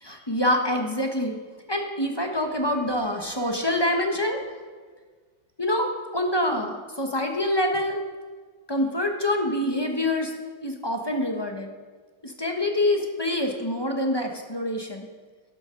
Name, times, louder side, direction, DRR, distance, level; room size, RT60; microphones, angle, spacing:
voice 1, 0.0-1.4 1.7-4.4 5.6-8.1 8.7-10.3 10.6-11.7 12.2-15.1, left 1 dB, 20° left, 2 dB, 0.8 m, -26 dB
12.5 x 12.0 x 3.8 m, 1.5 s
omnidirectional pair, 2.0 m